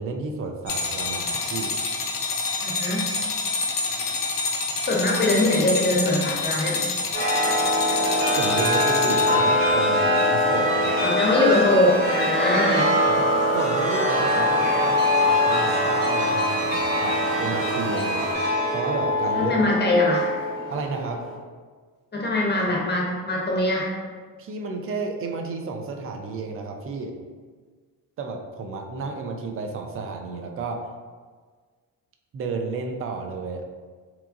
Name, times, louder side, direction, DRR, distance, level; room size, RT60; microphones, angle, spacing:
voice 1, 0.0-1.7 8.3-10.9 13.0-19.5 20.7-21.2 24.4-27.1 28.2-30.9 32.3-33.6, right 4 dB, 30° right, 3 dB, 0.4 m, -32 dB
clock ticking + alarm bell, 0.7-9.7, left 4 dB, 50° left, 0.5 m, -28 dB
voice 2, 2.6-3.1 4.9-6.9 11.0-12.9 19.3-20.3 22.1-23.9, left 1 dB, 25° left, -3 dB, 0.8 m, -22 dB
Chime, 7.1-21.3, left 1 dB, 70° right, 1.3 m, -23 dB
sound 1, 7.3-18.4, right 1 dB, 90° right, 0.6 m, -38 dB
2.9 x 2.2 x 2.5 m, 1.5 s
hypercardioid pair, 45°, 43 cm